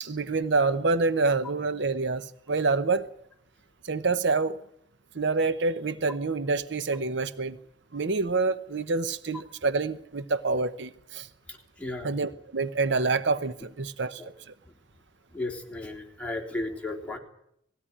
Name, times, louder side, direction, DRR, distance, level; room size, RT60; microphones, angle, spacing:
voice 1, 0.0-3.1 3.8-4.6 5.1-7.6 7.9-11.3 12.0-14.2 14.5-14.6, right 3 dB, 70° right, 13 dB, 0.9 m, -27 dB
voice 2, 11.5-12.1 14.2-14.3 15.3-17.2, left 2 dB, 5° left, 0 dB, 3.7 m, -35 dB
19.0 x 16.5 x 10.0 m, 0.74 s
head